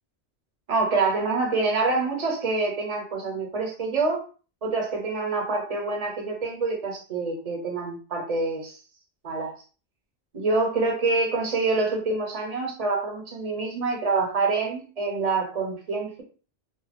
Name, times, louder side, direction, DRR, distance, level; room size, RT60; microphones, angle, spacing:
voice 1, 0.7-4.2 4.6-8.8 9.2-9.5 10.3-16.2, right 3 dB, 40° right, 0.9 m, -26 dB
2.6 x 2.1 x 3.3 m
omnidirectional pair, 1.1 m